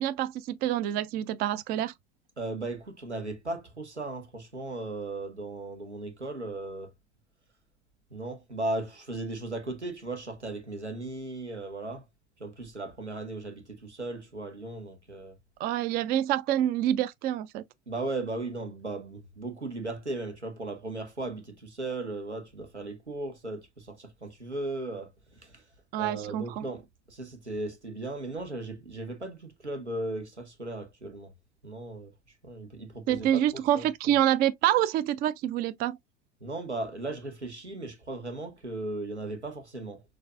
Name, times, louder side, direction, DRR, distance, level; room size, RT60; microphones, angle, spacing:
voice 1, 0.0-1.9 15.6-17.6 25.9-26.6 33.1-36.0, right 12 dB, 30° right, 0.4 m, -27 dB
voice 2, 2.4-6.9 8.1-12.1 12.4-15.4 17.9-25.6 26.0-31.3 31.6-34.1 36.4-40.0, right 2 dB, 90° right, 1.1 m, -37 dB
6.4 x 2.6 x 2.3 m
figure-of-eight pair, 75°, 33 cm